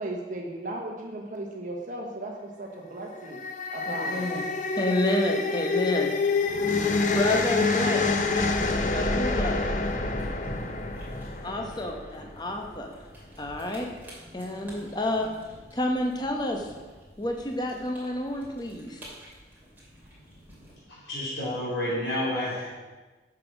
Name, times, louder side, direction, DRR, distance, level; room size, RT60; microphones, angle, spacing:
voice 1, 0.0-3.4 3.7-4.3, right 2 dB, 45° right, 0 dB, 1.1 m, -36 dB
sound 1, 3.1-12.4, left 3 dB, 45° left, 0.7 m, -27 dB
voice 2, 3.9-4.5 4.8-6.1 7.1-9.6 11.4-13.0 13.4-13.9 14.3-15.3 15.7-16.7 17.2-19.0, left 1 dB, 25° left, 2 dB, 1.0 m, -29 dB
sound 2, 8.3-20.8, equal, 10° right, 2.7 m, -47 dB
voice 3, 20.9-22.7, left 1 dB, 75° left, -7 dB, 3.2 m, -30 dB
8.6 x 6.0 x 6.0 m, 1.3 s
head